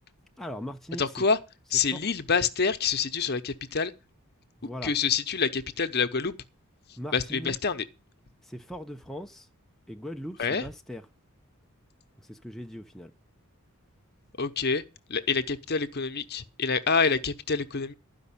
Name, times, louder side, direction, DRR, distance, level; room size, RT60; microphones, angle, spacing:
voice 1, 0.4-1.3 1.9-2.1 4.6-4.9 7.0-7.6 8.4-9.5 9.9-11.0 12.2-13.1, equal, ahead, 0.6 m, -39 dB
voice 2, 1.0-1.4 1.7-3.9 4.8-6.3 7.1-7.8 10.4-10.6 14.4-14.8 15.1-17.9, left 5 dB, 45° left, 0.8 m, -27 dB
12.5 x 5.3 x 8.4 m
head